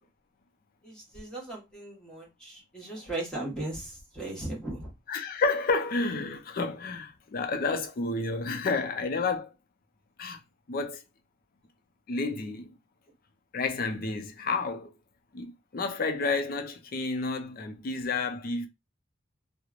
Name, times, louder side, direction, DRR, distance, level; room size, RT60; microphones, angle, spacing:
voice 1, 0.8-4.9, right 2 dB, 5° left, 1.1 m, -37 dB
voice 2, 5.1-9.5 10.2-10.4 10.7-11.0 12.1-12.7 13.5-14.9 15.3-18.7, left 3 dB, 50° left, 0.5 m, -30 dB
3.0 x 2.0 x 2.4 m
head